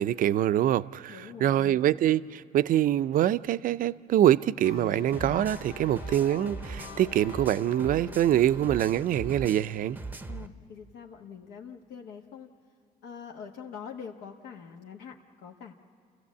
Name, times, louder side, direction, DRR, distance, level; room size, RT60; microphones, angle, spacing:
voice 1, 0.0-10.0, right 12 dB, 55° right, 0.5 m, -25 dB
voice 2, 1.1-1.8 10.3-12.5 13.0-15.7, left 7 dB, 80° left, 1.2 m, -44 dB
sound 1, 4.6-10.0, left 10 dB, 65° left, 0.5 m, -45 dB
sound 2, 5.1-10.5, right 3 dB, 10° right, 0.7 m, -41 dB
28.5 x 15.0 x 8.4 m
cardioid pair, 110°, 17 cm